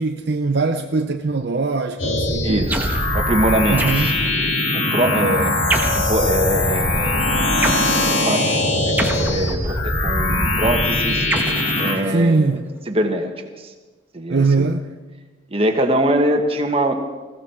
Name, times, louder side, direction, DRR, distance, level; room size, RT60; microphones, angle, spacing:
voice 1, 0.0-2.7 3.7-4.1 12.1-12.7 14.3-14.8, right 3 dB, 55° right, 0.6 m, -21 dB
sound 1, 2.0-12.0, left 1 dB, 85° left, 3.0 m, -21 dB
voice 2, 2.4-4.1 4.7-5.5 5.9-7.5 8.1-11.3 11.8-12.6 12.9-13.3 13.6-13.7 14.1-14.7 15.5-16.9, right 1 dB, 30° right, 1.5 m, -23 dB
sound 2, 2.7-3.1 3.8-4.4 5.7-6.2 7.6-7.9 9.0-9.8 11.3-12.4, right 2 dB, 10° right, 1.2 m, -26 dB
20.5 x 16.0 x 4.5 m
head